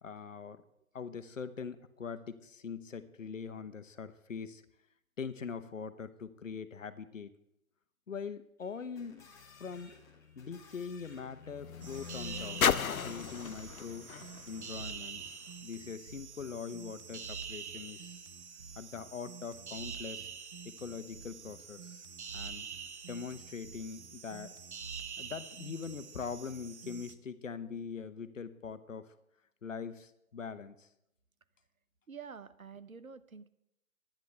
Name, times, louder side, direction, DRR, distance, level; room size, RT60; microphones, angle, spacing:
voice 1, 0.0-0.6 0.9-4.6 5.2-7.3 8.1-10.0 10.4-12.6 12.9-14.1 14.5-15.3 15.6-18.2 18.8-20.3 20.6-22.0 22.3-22.7 23.1-24.5 25.2-29.1 29.6-30.9, left 6 dB, 65° left, 12 dB, 1.2 m, -42 dB
sound 1, 8.6-13.7, left 4 dB, 5° left, 1.4 m, -59 dB
sound 2, 9.1-15.6 16.4-16.5, left 7 dB, 80° left, 0.7 m, -37 dB
sound 3, 11.8-27.1, right 6 dB, 55° right, 1.2 m, -46 dB
voice 2, 32.1-33.5, right 6 dB, 80° right, 13 dB, 1.2 m, -48 dB
23.0 x 10.5 x 3.4 m, 0.81 s
figure-of-eight pair, 145°, 41 cm